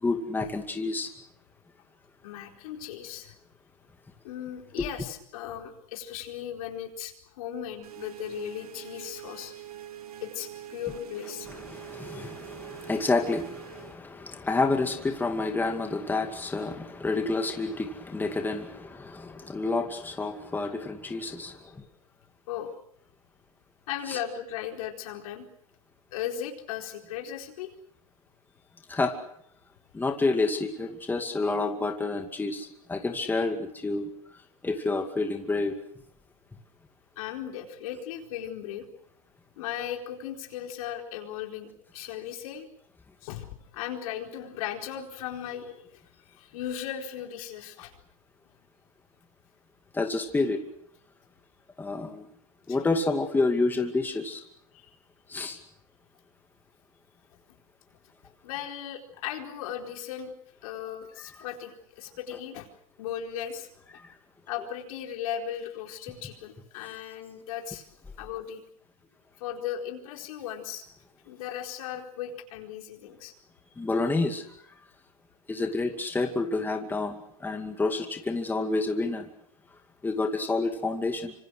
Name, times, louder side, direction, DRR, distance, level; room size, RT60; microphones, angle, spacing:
voice 1, 0.0-1.1 4.8-4.9 11.5-21.8 24.1-24.2 28.9-29.2 29.9-34.1 34.6-35.8 49.9-50.6 51.8-52.3 52.7-54.4 55.3-55.6 64.0-64.1 73.8-74.4 75.5-79.3 80.0-81.3, left 3 dB, 10° left, 5 dB, 2.3 m, -29 dB
voice 2, 2.2-3.3 4.2-9.6 10.2-11.5 12.1-12.2 22.5-22.7 23.9-25.5 26.1-27.7 37.2-38.9 39.6-42.7 43.2-47.9 52.7-52.8 54.7-54.9 58.4-60.3 60.6-62.7 63.0-63.7 64.5-67.9 68.2-68.6 69.4-70.9 71.2-73.3, left 10 dB, 70° left, 3 dB, 4.4 m, -37 dB
sound 1, 7.8-14.0, right 12 dB, 85° right, 2.6 m, -44 dB
26.0 x 25.5 x 6.3 m, 0.70 s
supercardioid pair, 120°, 19 cm